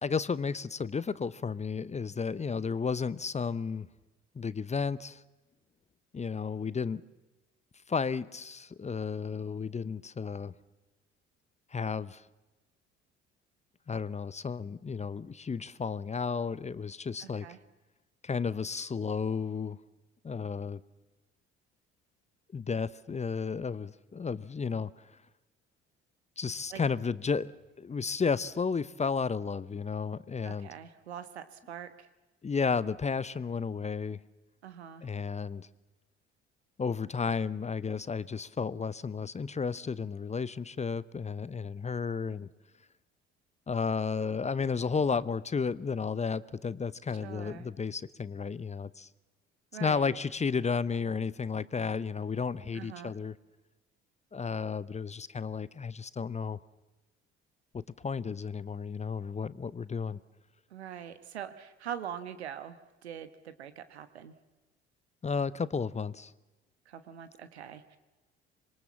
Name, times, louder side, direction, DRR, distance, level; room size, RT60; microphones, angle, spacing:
voice 1, 0.0-3.9 4.3-5.2 6.1-7.0 7.9-10.5 11.7-12.2 13.9-17.5 18.2-19.8 20.2-20.8 22.5-24.9 26.4-27.5 27.8-30.7 32.4-34.2 35.0-35.7 36.8-42.5 43.7-49.1 49.8-53.3 54.3-56.6 57.7-60.2 65.2-66.3, left 5 dB, 20° left, 0.8 m, -33 dB
voice 2, 17.2-17.6 26.7-26.8 30.4-32.1 34.6-35.0 47.2-47.7 49.7-50.2 52.7-53.1 60.7-64.3 66.8-68.0, right 9 dB, 80° right, 1.4 m, -43 dB
26.0 x 22.5 x 7.2 m
figure-of-eight pair, 55°, 32 cm